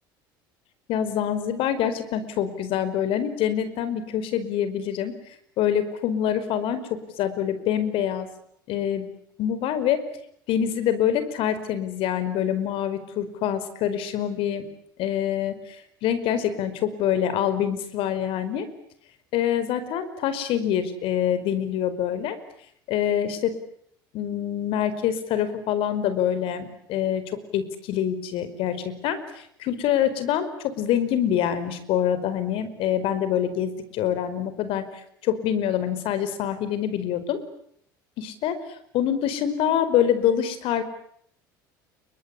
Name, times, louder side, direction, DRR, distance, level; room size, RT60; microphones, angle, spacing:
voice 1, 0.9-5.2 5.6-8.3 8.7-9.1 9.4-10.0 10.5-14.7 15.0-18.7 19.3-22.4 22.9-23.5 24.1-34.9 35.2-37.4 38.2-38.6 38.9-40.8, left 9 dB, 55° left, 12 dB, 4.9 m, -25 dB
29.5 x 24.0 x 8.5 m, 0.69 s
figure-of-eight pair, 65°, 11 cm